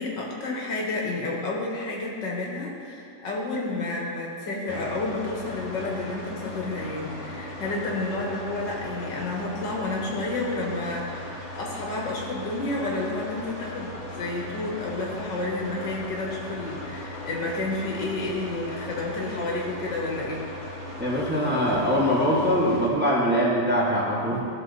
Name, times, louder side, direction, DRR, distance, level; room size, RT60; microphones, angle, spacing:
voice 1, 0.0-20.5, left 2 dB, 75° left, -2 dB, 2.2 m, -30 dB
sound 1, 4.7-22.9, left 1 dB, 30° left, 1.7 m, -38 dB
voice 2, 21.0-24.4, equal, 5° right, -6 dB, 1.5 m, -23 dB
14.0 x 6.4 x 4.2 m, 2.5 s
omnidirectional pair, 2.0 m